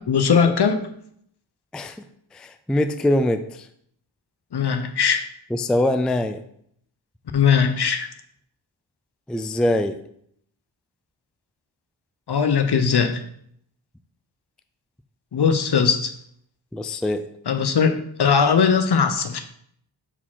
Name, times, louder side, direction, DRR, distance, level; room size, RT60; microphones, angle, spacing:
voice 1, 0.1-0.8 4.5-5.2 7.3-8.1 12.3-13.2 15.3-16.1 17.5-17.9 18.2-19.4, left 6 dB, 60° left, 7 dB, 0.8 m, -19 dB
voice 2, 2.3-3.4 5.5-6.4 9.3-10.0 16.7-17.3, left 1 dB, ahead, 9 dB, 0.3 m, -22 dB
4.9 x 4.2 x 5.6 m, 0.69 s
wide cardioid pair, 70°, 45 cm